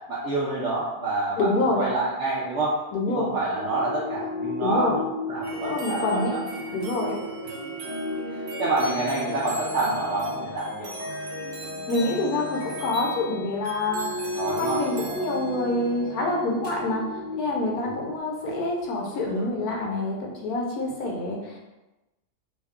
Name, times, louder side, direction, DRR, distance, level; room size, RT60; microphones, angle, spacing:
voice 1, 0.1-2.7 3.1-5.0 5.3-6.4 8.2-10.9 14.4-14.8, right 2 dB, 70° right, -6 dB, 0.7 m, -27 dB
voice 2, 1.4-1.9 2.9-3.3 4.6-5.0 5.6-6.3 6.7-7.2 11.9-14.1 14.4-17.0 17.4-21.6, left 2 dB, 70° left, -1 dB, 1.0 m, -26 dB
sound 1, 3.5-12.8 13.7-18.2, left 2 dB, 35° right, 0.5 m, -36 dB
sound 2, 5.4-19.5, equal, 85° right, 1.2 m, -37 dB
3.0 x 2.2 x 3.4 m, 1.0 s
omnidirectional pair, 1.8 m